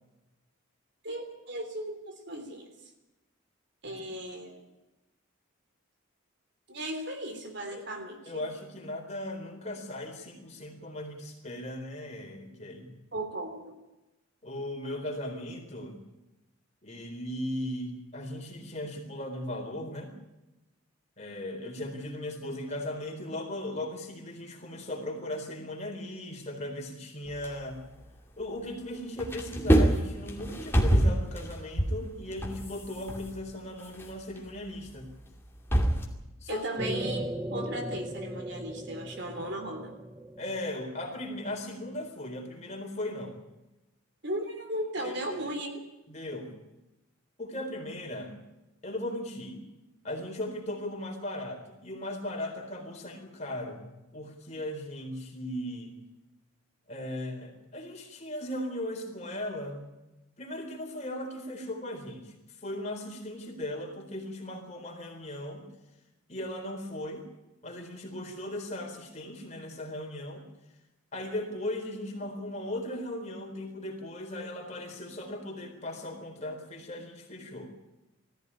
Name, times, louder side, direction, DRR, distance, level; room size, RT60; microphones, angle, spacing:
voice 1, 1.0-2.7 3.8-4.6 6.7-8.4 13.1-13.8 36.5-39.9 44.2-45.8, right 1 dB, 55° right, 5 dB, 3.3 m, -36 dB
voice 2, 8.3-12.9 14.4-16.0 16.8-20.2 21.2-27.8 28.4-35.1 36.4-36.7 40.4-43.4 45.0-45.5 46.1-46.5 47.4-48.3 48.8-49.6 50.0-56.0 56.9-59.8 60.4-65.7 66.3-67.2 67.6-70.5 71.1-77.7, left 1 dB, 30° left, 2 dB, 4.1 m, -37 dB
sound 1, 27.3-28.8 29.1-36.1, right 1 dB, 10° left, 2.6 m, -28 dB
sound 2, 36.8-41.8, right 1 dB, 15° right, 0.7 m, -38 dB
20.0 x 14.5 x 9.9 m, 1.0 s
head